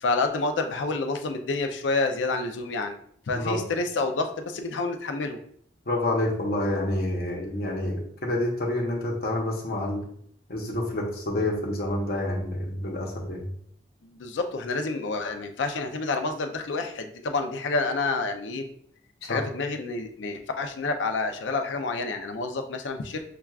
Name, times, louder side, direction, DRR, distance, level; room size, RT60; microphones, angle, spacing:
voice 1, 0.0-3.0 3.3-5.4 14.0-18.6 19.2-23.2, left 3 dB, 90° left, 6 dB, 0.5 m, -28 dB
voice 2, 5.9-10.0 10.5-13.4 19.3-19.4, left 1 dB, 55° left, -2 dB, 0.8 m, -28 dB
5.8 x 2.3 x 2.3 m, 0.63 s
head